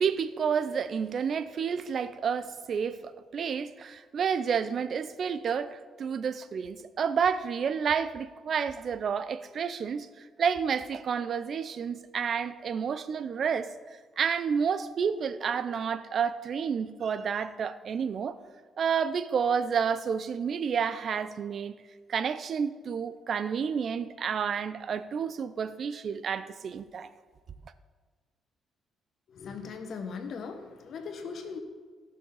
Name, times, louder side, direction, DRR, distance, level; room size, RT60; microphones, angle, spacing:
voice 1, 0.0-13.7 14.2-18.4 18.8-21.7 22.1-27.1, right 6 dB, 55° right, 0.6 m, -30 dB
voice 2, 29.3-31.6, left 5 dB, 60° left, 1.5 m, -39 dB
17.5 x 6.4 x 4.1 m
cardioid pair, 90°, 0 cm